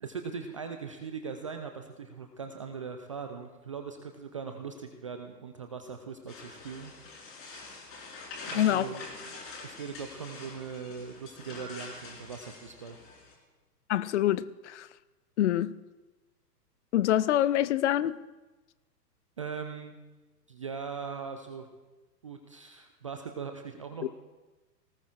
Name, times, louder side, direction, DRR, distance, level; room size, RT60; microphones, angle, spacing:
voice 1, 0.0-6.9 8.5-9.1 9.6-13.0 19.4-20.0 20.5-21.7 22.2-24.1, right 6 dB, 20° right, 0.4 m, -40 dB
sound 1, 6.3-13.3, left 3 dB, 25° left, 4.0 m, -45 dB
voice 2, 8.5-8.9 13.9-14.9 15.4-15.8 16.9-18.2 24.0-24.1, left 12 dB, 45° left, 0.6 m, -26 dB
24.5 x 18.5 x 2.5 m
figure-of-eight pair, 115°, 49 cm